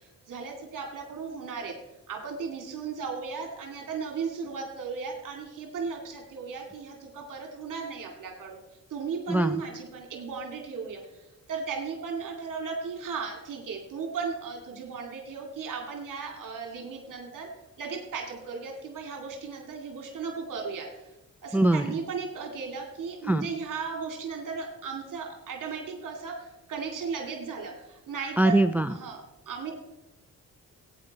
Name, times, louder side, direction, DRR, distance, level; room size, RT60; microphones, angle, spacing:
voice 1, 0.0-1.7 2.1-8.6 8.9-17.5 17.8-21.1 21.4-28.6 28.9-29.7, right 5 dB, 70° right, 2 dB, 2.3 m, -36 dB
voice 2, 9.3-9.6 21.5-21.8 23.3-23.5 28.4-28.9, right 1 dB, 5° right, 11 dB, 0.4 m, -22 dB
14.0 x 9.1 x 4.1 m, 0.97 s
cardioid pair, 90°, 33 cm